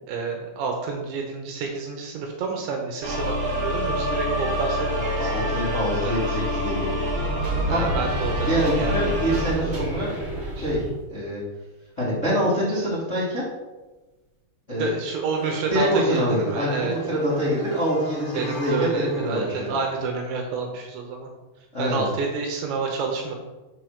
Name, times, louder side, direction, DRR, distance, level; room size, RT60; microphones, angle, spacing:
voice 1, 0.0-6.1 7.7-9.1 14.8-17.0 18.3-21.3 21.8-23.4, right 4 dB, 75° right, 2 dB, 2.8 m, -29 dB
sound 1, 3.0-9.5, left 1 dB, 60° right, 1.3 m, -26 dB
voice 2, 5.2-7.0 7.7-7.9 8.4-10.1 10.5-11.4 12.0-13.4 14.7-14.9 15.7-19.8 21.7-22.1, equal, 75° left, -9 dB, 0.6 m, -25 dB
sound 2, 7.3-11.0, right 3 dB, 45° right, 2.7 m, -30 dB
sound 3, 15.3-20.0, left 1 dB, 40° left, 0.9 m, -39 dB
6.9 x 4.6 x 6.4 m, 1.2 s
omnidirectional pair, 6.0 m